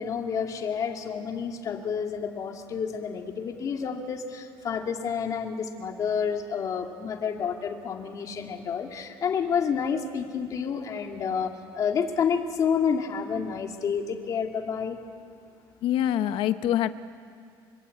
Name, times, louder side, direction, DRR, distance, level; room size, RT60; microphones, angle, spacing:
voice 1, 0.0-15.0, left 6 dB, 40° left, 3 dB, 2.4 m, -29 dB
voice 2, 15.8-16.9, left 11 dB, 65° left, 11 dB, 1.0 m, -25 dB
26.0 x 24.5 x 8.5 m, 2.3 s
cardioid pair, 160°, 9 cm